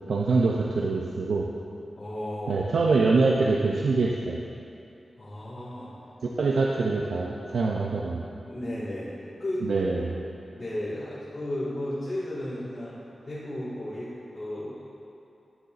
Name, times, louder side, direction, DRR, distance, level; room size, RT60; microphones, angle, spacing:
voice 1, 0.1-1.5 2.5-4.4 6.4-8.3 9.6-10.2, right 3 dB, 85° right, -2 dB, 0.5 m, -24 dB
voice 2, 1.9-2.6 5.2-5.9 8.4-9.6 10.0-10.1 10.5-13.0 13.2-14.8, left 1 dB, 45° left, -11 dB, 2.0 m, -34 dB
12.0 x 6.9 x 2.5 m, 2.7 s
wide cardioid pair, 85°, 0 cm